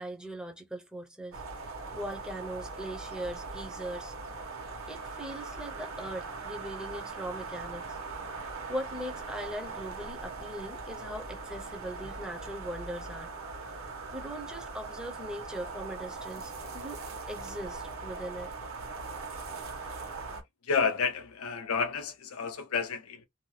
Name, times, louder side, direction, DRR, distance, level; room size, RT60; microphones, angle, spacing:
voice 1, 0.0-1.4 1.9-4.1 4.9-8.0 8.3-13.3 14.1-17.0 17.3-18.5, equal, 5° right, 0.5 m, -40 dB
sound 1, 1.3-20.4, right 3 dB, 65° right, 1.0 m, -40 dB
voice 2, 20.6-23.2, left 5 dB, 75° left, 0.5 m, -30 dB
2.6 x 2.2 x 3.1 m
head